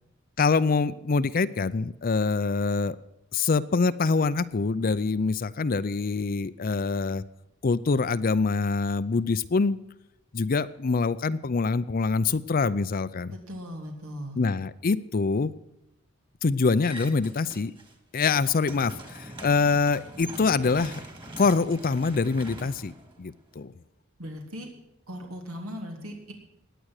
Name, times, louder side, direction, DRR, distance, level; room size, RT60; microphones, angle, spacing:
voice 1, 0.4-3.0 3.3-7.2 7.6-9.8 10.3-13.3 14.4-15.5 16.4-17.7 18.1-21.0 21.4-22.9 23.2-23.7, left 4 dB, 45° left, 14 dB, 0.5 m, -25 dB
voice 2, 13.3-14.4 24.2-24.7 25.1-26.3, equal, 90° right, 2 dB, 3.4 m, -38 dB
sound 1, 16.8-17.9 18.2-23.6, right 1 dB, 25° right, 2.2 m, -43 dB
17.0 x 10.0 x 6.5 m, 0.86 s
head